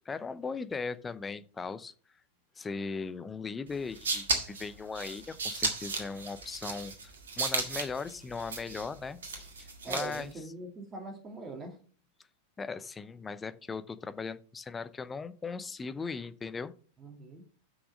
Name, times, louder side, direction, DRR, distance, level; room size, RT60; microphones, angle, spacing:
voice 1, 0.1-1.9 2.6-9.4 9.9-10.3 12.6-16.7, left 4 dB, 15° left, 13 dB, 0.7 m, -38 dB
sound 1, 3.7-10.3, right 4 dB, 65° right, 1.9 m, -35 dB
voice 2, 9.8-11.8 17.0-17.4, right 2 dB, 20° right, 2 dB, 2.1 m, -42 dB
6.3 x 6.2 x 6.3 m, 0.40 s
figure-of-eight pair, 90°, 0 cm